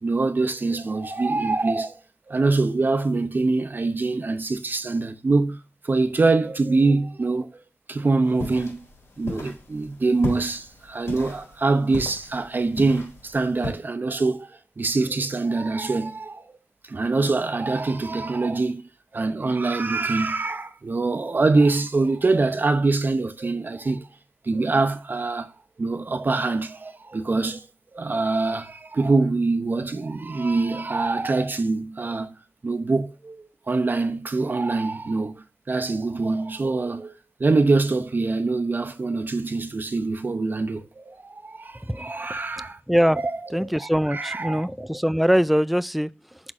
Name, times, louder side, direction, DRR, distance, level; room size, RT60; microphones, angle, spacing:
voice 1, 0.0-2.0 2.3-5.6 5.8-7.5 7.9-8.9 9.2-16.6 16.9-24.1 24.4-25.5 25.8-27.7 27.9-32.4 32.6-37.1 37.4-42.8 43.2-43.3 43.6-44.7, right 3 dB, 45° right, 0.8 m, -24 dB
sound 1, 8.3-13.7, left 2 dB, 85° left, 4.2 m, -36 dB
voice 2, 41.8-43.2 43.5-46.4, equal, ahead, 0.3 m, -23 dB
6.1 x 4.1 x 4.9 m
wide cardioid pair, 100°, 4 cm